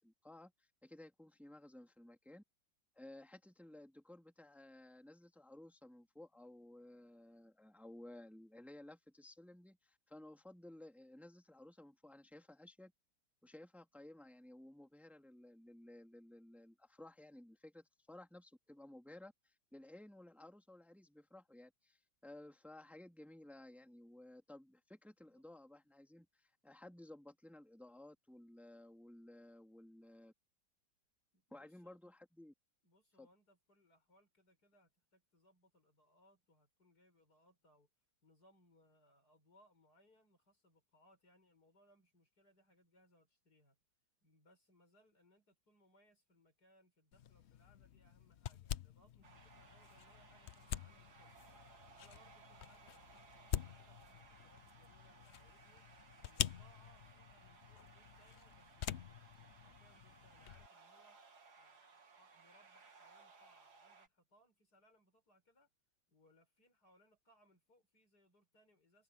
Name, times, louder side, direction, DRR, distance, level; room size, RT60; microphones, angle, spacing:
voice 1, 0.0-2.4 3.0-12.9 13.4-30.3 31.5-32.5 33.2-33.3, left 1 dB, ahead, 2.4 m, -57 dB
voice 2, 31.3-32.0 32.8-37.9 38.2-43.8 44.2-51.4 51.9-55.9 56.2-61.2 61.5-65.7 66.1-69.0, equal, 55° left, 7.4 m, -71 dB
sound 1, 47.1-60.7, left 11 dB, 85° left, 0.5 m, -47 dB
sound 2, 49.2-64.1, right 4 dB, 55° right, 2.7 m, -62 dB
omnidirectional pair, 2.0 m